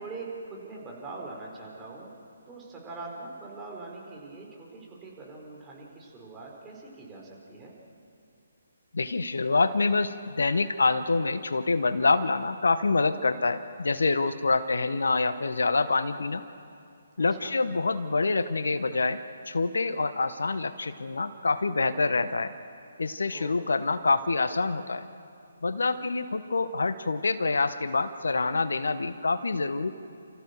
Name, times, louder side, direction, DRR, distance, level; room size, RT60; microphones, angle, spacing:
voice 1, 0.0-2.1 2.5-7.7 17.2-17.5 23.3-23.6, right 3 dB, 15° right, -3 dB, 4.7 m, -42 dB
voice 2, 8.9-16.4 17.2-22.5 23.0-25.1 25.6-29.9, left 3 dB, 70° left, 12 dB, 1.0 m, -26 dB
29.5 x 15.0 x 6.9 m, 2.5 s
figure-of-eight pair, 140°, 0 cm